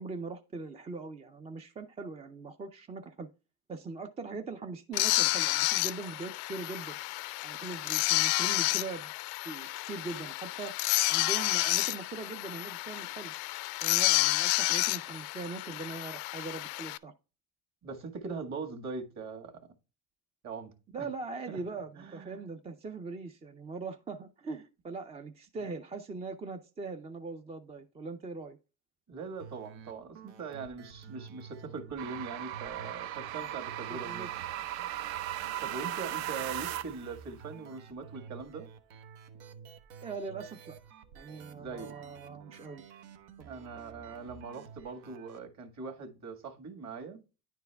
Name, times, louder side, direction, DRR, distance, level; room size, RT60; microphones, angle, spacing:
voice 1, 0.0-3.3 3.7-7.0 7.4-9.1 9.4-10.7 11.1-13.3 13.8-17.1 20.9-28.6 33.9-34.3 40.0-40.8 41.1-42.8 43.4-43.5, right 4 dB, 15° right, 0.3 m, -41 dB
sound 1, 4.9-17.0, left 20 dB, 90° left, 0.5 m, -30 dB
voice 2, 17.8-19.6 20.4-21.1 21.5-22.4 29.1-34.3 35.6-38.7 41.5-42.0 43.5-47.2, right 4 dB, 40° right, 1.8 m, -41 dB
sound 2, 29.4-45.4, right 6 dB, 85° right, 1.1 m, -51 dB
sound 3, 32.0-37.1, right 12 dB, 60° right, 0.6 m, -37 dB
9.8 x 4.6 x 3.4 m
cardioid pair, 120°, 42 cm